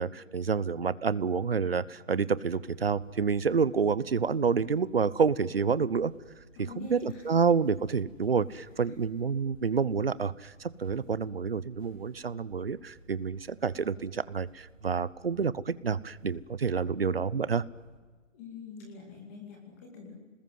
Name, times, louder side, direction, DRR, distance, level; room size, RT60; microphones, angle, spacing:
voice 1, 0.0-6.1 6.6-17.6, right 5 dB, 50° right, 19 dB, 0.9 m, -28 dB
sound 1, 2.6-18.0, right 2 dB, 25° right, 4.4 m, -57 dB
voice 2, 6.6-7.3 18.3-20.1, left 5 dB, 10° left, 1 dB, 2.4 m, -44 dB
28.0 x 20.5 x 9.4 m, 1.3 s
hypercardioid pair, 175°, 39 cm